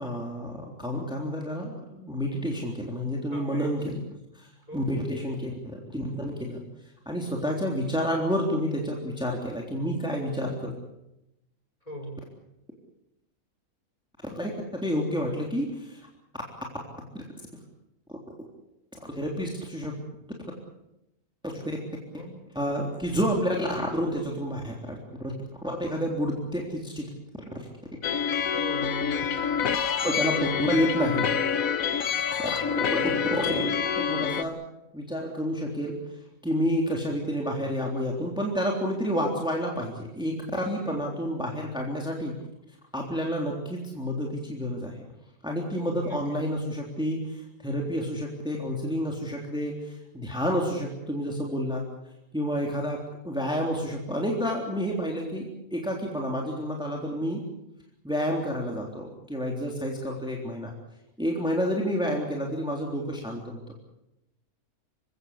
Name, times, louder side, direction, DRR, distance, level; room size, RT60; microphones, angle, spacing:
voice 1, 0.0-4.0 4.4-6.6 7.1-10.7 14.3-16.1 17.1-17.2 19.1-19.9 20.2-20.3 21.4-21.8 22.6-25.3 25.6-27.0 30.0-31.3 32.4-32.6 32.9-33.6 34.0-34.6 34.9-36.0 36.4-42.4 42.9-45.0 45.4-51.9 52.3-57.4 58.0-60.7 61.2-63.7, equal, 5° right, -1 dB, 3.5 m, -29 dB
voice 2, 3.3-4.0 4.7-4.9 11.9-12.2 22.2-22.3 28.5-29.4 40.9-41.2 45.8-46.2, equal, 25° left, 3 dB, 5.7 m, -39 dB
sound 1, 28.0-34.4, left 7 dB, 65° left, 1.5 m, -27 dB
28.0 x 17.0 x 8.4 m, 0.88 s
omnidirectional pair, 1.6 m